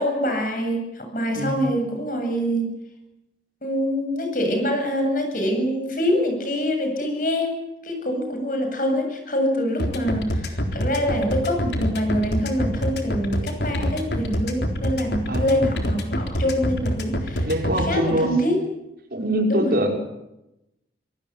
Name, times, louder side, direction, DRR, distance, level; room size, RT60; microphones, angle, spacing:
voice 1, 0.0-2.7 3.6-17.5 17.9-18.5 19.5-19.8, equal, 50° left, 4 dB, 7.9 m, -25 dB
voice 2, 1.3-1.7 15.3-15.8 17.4-18.3 19.1-20.0, right 1 dB, 55° right, 1 dB, 6.1 m, -23 dB
sound 1, 9.8-17.8, equal, 75° left, 3.9 m, -25 dB
26.0 x 18.5 x 9.8 m, 0.90 s
head